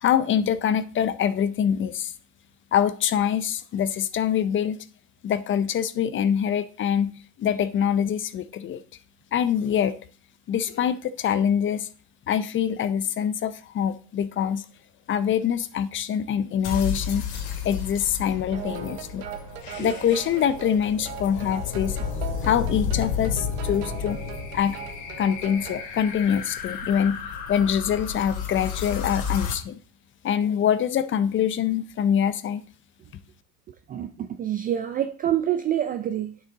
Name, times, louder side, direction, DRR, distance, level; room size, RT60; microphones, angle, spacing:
voice 1, 0.0-2.1 2.7-4.8 5.2-7.1 7.4-8.8 9.3-9.9 10.5-11.9 12.3-14.6 15.1-17.3 17.6-19.2 19.8-22.0 22.4-24.2 24.5-24.8 25.2-27.2 27.5-29.8 30.2-32.6, left 8 dB, 25° left, 0.6 m, -24 dB
sound 1, 16.6-29.5, left 7 dB, 50° left, 2.4 m, -32 dB
sound 2, 18.5-25.9, right 10 dB, 70° right, 1.4 m, -40 dB
voice 2, 33.9-36.4, right 11 dB, 20° right, 0.3 m, -27 dB
8.9 x 6.2 x 4.0 m
hypercardioid pair, 100°, 48 cm